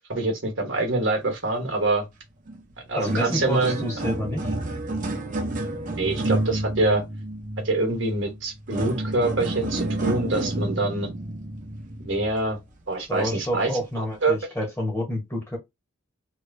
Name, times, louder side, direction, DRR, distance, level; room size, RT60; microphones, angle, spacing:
voice 1, 0.1-2.1 2.9-3.8 5.9-7.0 7.6-11.1 12.0-12.6 12.9-13.7 14.0-14.4, right 2 dB, 60° right, 1.1 m, -25 dB
sound 1, 2.5-2.6 2.9-12.6 13.2-13.4 14.1-14.2, right 1 dB, 35° right, 0.7 m, -30 dB
voice 2, 2.9-4.5 13.0-15.6, left 1 dB, 10° left, 1.0 m, -29 dB
3.0 x 2.7 x 2.6 m
head